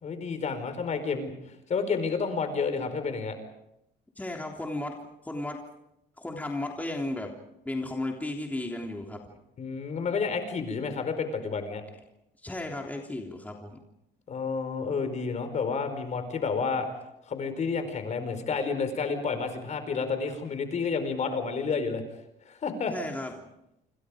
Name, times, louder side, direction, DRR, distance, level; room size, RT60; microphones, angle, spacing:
voice 1, 0.0-1.3 1.7-3.4 9.6-11.8 14.3-16.9 17.3-22.0 22.4-22.9, left 5 dB, 45° left, 8 dB, 5.0 m, -30 dB
voice 2, 4.2-5.0 5.2-5.6 6.2-7.3 7.6-9.2 12.4-13.8 22.9-23.5, left 2 dB, 10° left, 1 dB, 3.3 m, -34 dB
28.0 x 27.0 x 5.1 m, 0.83 s
cardioid pair, 110°, 17 cm